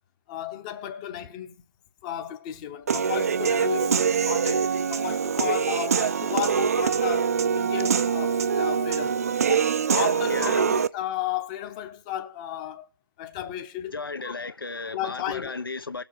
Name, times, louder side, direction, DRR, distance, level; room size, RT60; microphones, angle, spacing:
voice 1, 0.3-1.6 2.0-12.9 13.2-13.9 14.2-14.5 14.9-15.5, left 11 dB, 20° left, 0.8 m, -34 dB
Human voice / Piano, 2.9-10.9, right 6 dB, 45° right, 0.5 m, -24 dB
voice 2, 10.3-10.6 13.9-16.0, left 4 dB, 80° left, 1.0 m, -34 dB
18.5 x 7.0 x 4.6 m
figure-of-eight pair, 150°, 12 cm